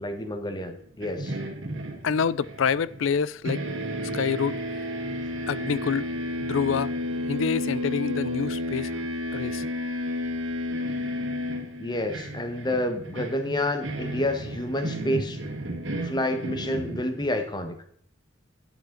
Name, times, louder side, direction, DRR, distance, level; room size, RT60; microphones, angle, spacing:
voice 1, 0.0-1.4 11.8-15.4 16.0-17.8, left 1 dB, 20° left, 1.3 m, -29 dB
sound 1, 1.0-3.2 3.5-17.4, equal, 80° right, 2.0 m, -32 dB
voice 2, 2.0-3.6 4.1-4.6 5.5-6.1 6.4-6.9 7.3-8.9 9.3-9.7, left 6 dB, 85° left, 0.4 m, -27 dB
11.0 x 10.5 x 3.9 m
head